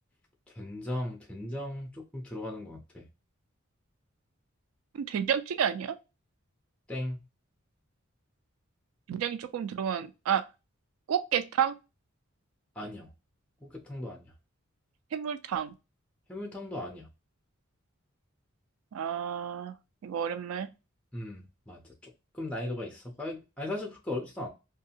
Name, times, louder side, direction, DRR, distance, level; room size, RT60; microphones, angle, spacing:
voice 1, 0.5-3.1 6.9-7.2 12.8-13.1 13.6-14.3 16.3-17.1 21.1-24.5, left 1 dB, 5° left, 0.5 m, -37 dB
voice 2, 4.9-6.0 9.1-10.4 11.1-11.8 15.1-15.7 18.9-19.7 20.0-20.7, right 8 dB, 85° right, 0.3 m, -30 dB
2.6 x 2.4 x 2.8 m
head